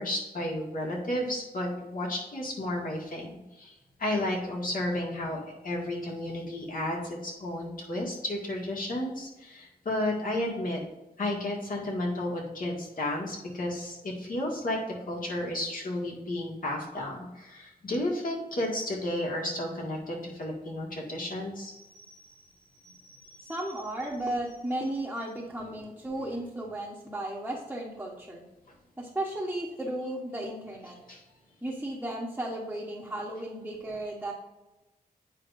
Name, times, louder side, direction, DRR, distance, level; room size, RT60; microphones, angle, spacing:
voice 1, 0.0-3.7 4.0-10.8 11.2-14.8 15.1-22.2 22.8-23.6 31.1-31.2, left 1 dB, 60° left, -2 dB, 2.1 m, -33 dB
voice 2, 23.4-28.4 29.0-31.0 31.6-34.3, right 1 dB, 10° right, -5 dB, 1.2 m, -34 dB
9.2 x 4.9 x 2.7 m, 1.0 s
wide cardioid pair, 100°, 16 cm